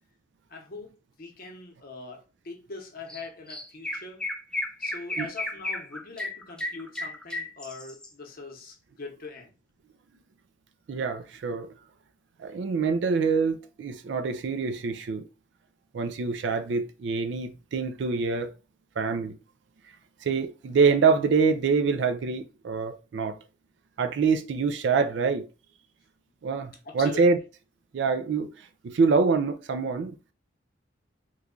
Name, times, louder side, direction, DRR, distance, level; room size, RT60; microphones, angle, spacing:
voice 1, 0.5-4.2 4.8-9.5 26.8-27.2, left 3 dB, 50° left, 0.8 m, -42 dB
Chirp tweet, 3.1-3.2 3.5-8.1, left 1 dB, 5° left, 0.4 m, -33 dB
voice 2, 10.9-11.7 12.4-15.2 15.9-18.5 19.0-19.4 20.2-23.4 24.0-25.5 26.4-27.4 27.9-30.2, right 5 dB, 65° right, 0.4 m, -25 dB
3.1 x 2.3 x 3.7 m
head